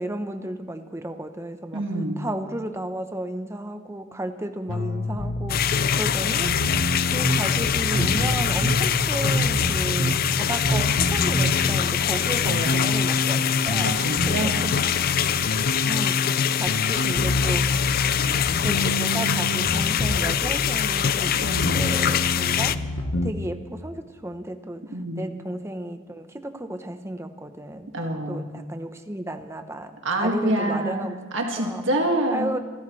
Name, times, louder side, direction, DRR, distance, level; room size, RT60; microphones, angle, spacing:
voice 1, 0.0-1.8 2.2-6.8 7.1-14.0 14.3-14.9 15.8-17.7 18.6-21.4 21.7-27.9 28.3-31.2 31.6-31.8 32.3-32.6, right 1 dB, 15° right, 8 dB, 0.8 m, -34 dB
voice 2, 1.7-2.2 6.2-6.8 12.5-12.9 13.8-14.7 21.4-21.8 24.9-25.2 27.9-28.4 30.0-32.5, right 1 dB, 70° right, 1 dB, 2.0 m, -27 dB
sound 1, 4.7-23.3, left 2 dB, 85° left, 1.1 m, -28 dB
sound 2, 5.5-22.8, left 9 dB, 45° left, 0.4 m, -24 dB
sound 3, 6.7-11.9, right 1 dB, 40° right, 0.9 m, -29 dB
27.0 x 13.0 x 3.2 m, 1.4 s
head